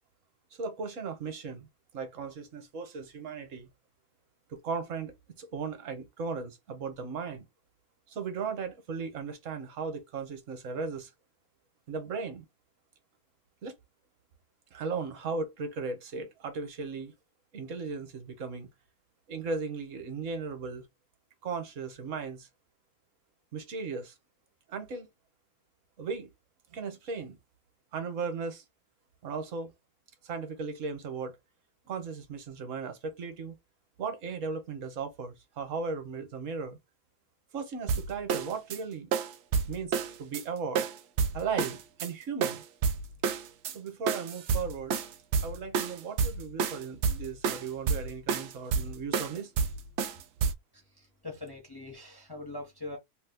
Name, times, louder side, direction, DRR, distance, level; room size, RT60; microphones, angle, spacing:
voice 1, 0.6-1.7 1.9-3.7 4.5-7.4 8.1-11.1 11.9-12.4 13.6-13.7 14.7-17.1 17.5-18.7 19.3-20.8 21.4-22.5 23.5-24.1 24.7-25.1 26.0-26.3 26.7-27.4 27.9-28.6 29.2-29.7 30.2-31.4 31.9-33.5 34.0-36.8 37.5-39.1 39.6-40.8 41.3-42.6 43.7-44.9 45.4-49.5, right 5 dB, 55° right, 1.1 m, -36 dB
sound 1, 37.9-38.8 39.1-40.4 40.8-42.1 42.4-43.8 44.1-50.5, right 6 dB, 75° right, 0.6 m, -30 dB
voice 2, 50.7-53.0, left 2 dB, 35° left, 0.3 m, -42 dB
3.0 x 2.2 x 3.4 m
omnidirectional pair, 1.7 m